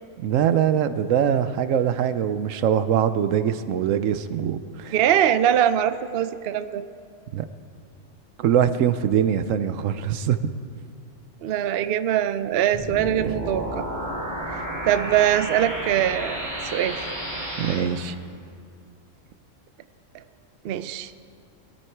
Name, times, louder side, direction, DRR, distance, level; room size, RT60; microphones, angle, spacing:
voice 1, 0.2-4.9 7.3-7.5 8.4-10.4 17.6-18.1, right 9 dB, 80° right, 12 dB, 1.0 m, -22 dB
voice 2, 4.9-6.8 11.4-13.9 14.5-17.0 20.6-21.1, right 10 dB, 60° right, 12 dB, 0.7 m, -22 dB
sound 1, 12.7-17.7, right 1 dB, 15° right, 5.2 m, -31 dB
20.5 x 13.0 x 4.6 m, 2.3 s
omnidirectional pair, 1.3 m